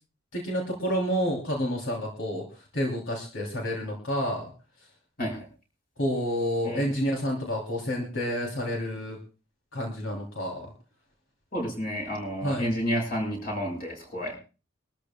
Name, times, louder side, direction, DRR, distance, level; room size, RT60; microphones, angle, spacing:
voice 1, 0.3-4.5 4.8-4.9 6.0-9.2 9.7-10.7 12.4-12.7, equal, 75° left, -1 dB, 3.1 m, -29 dB
voice 2, 11.5-14.4, equal, 45° left, 1 dB, 6.1 m, -30 dB
24.0 x 13.5 x 2.3 m, 0.34 s
head